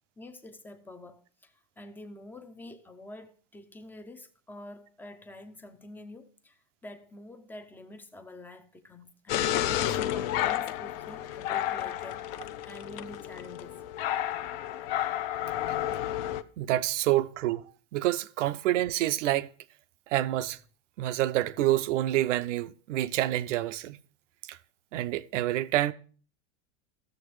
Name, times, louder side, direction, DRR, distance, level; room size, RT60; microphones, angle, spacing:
voice 1, 0.2-13.8, left 1 dB, 5° left, 0.4 m, -47 dB
sound 1, 9.3-16.4, left 12 dB, 50° left, 0.6 m, -31 dB
voice 2, 16.6-17.6 17.9-19.5 20.1-20.6 21.0-24.0 24.5-24.6 24.9-25.9, right 14 dB, 90° right, 0.6 m, -27 dB
15.5 x 6.7 x 3.2 m
supercardioid pair, 140°, 35 cm